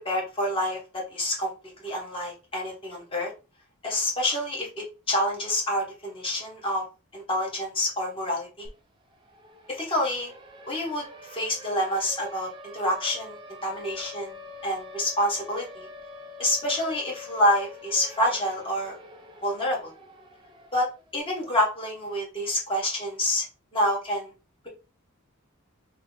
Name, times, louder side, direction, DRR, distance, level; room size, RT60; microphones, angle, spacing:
voice 1, 0.0-1.5 1.8-3.3 3.8-6.8 7.1-8.7 9.7-10.3 10.7-14.3 14.6-15.9 16.4-19.0 19.4-19.9 20.7-23.5 23.7-24.3, left 1 dB, 25° left, -2 dB, 1.2 m, -27 dB
Siren, 8.7-8.8 9.1-21.1, left 2 dB, 20° right, 0.5 m, -45 dB
2.9 x 2.1 x 3.8 m, 0.31 s
head